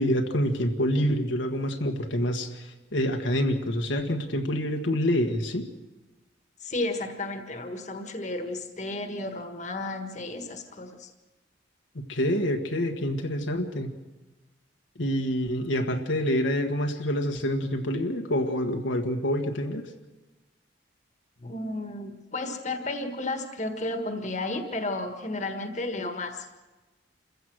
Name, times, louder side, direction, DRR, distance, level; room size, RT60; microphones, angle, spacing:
voice 1, 0.0-5.6 12.1-13.9 15.0-19.8, equal, 80° left, 3 dB, 1.6 m, -27 dB
voice 2, 6.6-11.1 21.4-26.5, left 2 dB, 40° left, 6 dB, 1.6 m, -33 dB
27.5 x 15.5 x 6.4 m, 1.2 s
head